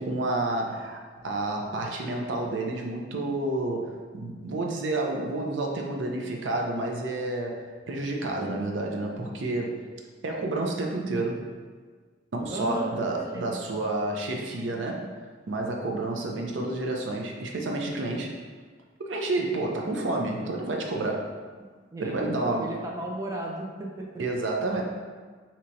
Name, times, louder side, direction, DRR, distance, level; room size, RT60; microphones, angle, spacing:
voice 1, 0.0-9.8 10.2-11.4 12.3-15.1 15.5-18.3 19.0-21.3 22.0-22.7 24.2-24.8, right 2 dB, 75° right, 1 dB, 0.5 m, -30 dB
voice 2, 12.5-13.6 21.9-24.1, right 1 dB, 15° right, -2 dB, 0.4 m, -35 dB
2.9 x 2.6 x 4.4 m, 1.5 s
head